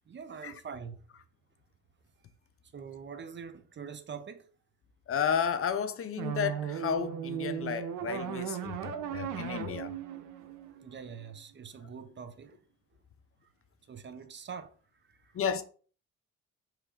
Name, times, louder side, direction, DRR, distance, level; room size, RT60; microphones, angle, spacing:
voice 1, 0.1-1.0 2.7-4.4 10.7-12.6 13.9-14.7 15.2-15.3, right 6 dB, 40° right, 0.6 m, -44 dB
voice 2, 5.1-9.9 15.3-15.6, left 7 dB, 50° left, 0.6 m, -32 dB
sound 1, 6.2-11.3, right 9 dB, 90° right, 0.7 m, -37 dB
3.5 x 3.2 x 4.8 m
cardioid pair, 90°, 30 cm